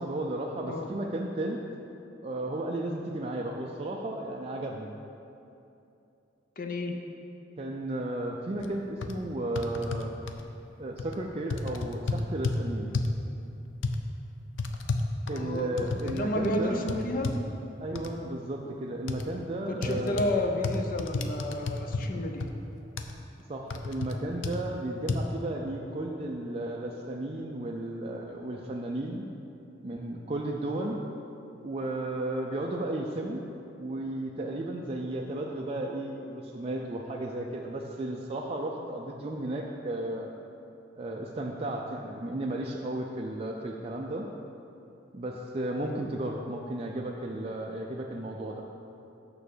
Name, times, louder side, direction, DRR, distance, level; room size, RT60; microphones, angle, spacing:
voice 1, 0.0-1.6 2.2-4.9 7.6-10.1 10.8-12.9 15.3-16.8 17.8-20.3 23.5-29.3 29.8-31.0 31.6-33.4 33.8-40.3 41.0-44.3 45.1-48.7, right 1 dB, 35° right, -1 dB, 0.5 m, -34 dB
voice 2, 6.6-7.0 15.3-17.3 19.7-22.5, left 1 dB, 50° left, 4 dB, 0.7 m, -31 dB
sound 1, 8.6-8.7 9.0-9.1 9.6-10.4 11.0-11.1 11.5-12.6 12.9-13.2 13.8-14.0 14.6-16.2 16.4-16.6 16.9-17.4 17.9-18.1 19.1-19.2 19.8-20.3 20.6-22.1 22.4-22.5 23.0-23.1 23.7-24.1 24.4-24.6 25.1-25.2, left 3 dB, 85° left, 0.6 m, -31 dB
6.7 x 6.1 x 6.7 m, 2.8 s
head